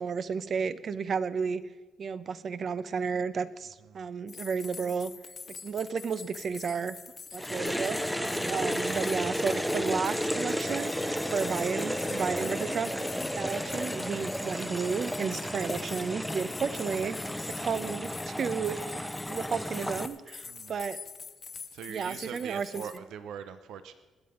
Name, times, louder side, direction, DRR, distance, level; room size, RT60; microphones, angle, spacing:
voice 1, 0.0-1.6 2.0-5.1 5.6-7.0 7.3-11.0 11.3-21.0 21.9-22.7, right 6 dB, 50° right, 13 dB, 0.8 m, -33 dB
sound 1, 4.3-23.0, left 5 dB, 40° left, 0.7 m, -45 dB
voice 2, 7.3-7.7 8.3-8.7 20.4-20.8 21.7-23.9, right 8 dB, 85° right, 11 dB, 0.8 m, -43 dB
sound 2, 7.4-20.1, equal, ahead, 0.8 m, -33 dB
sound 3, 7.7-13.2, right 3 dB, 25° right, 1.0 m, -42 dB
20.0 x 8.8 x 5.3 m, 1.2 s
cardioid pair, 90°, 0 cm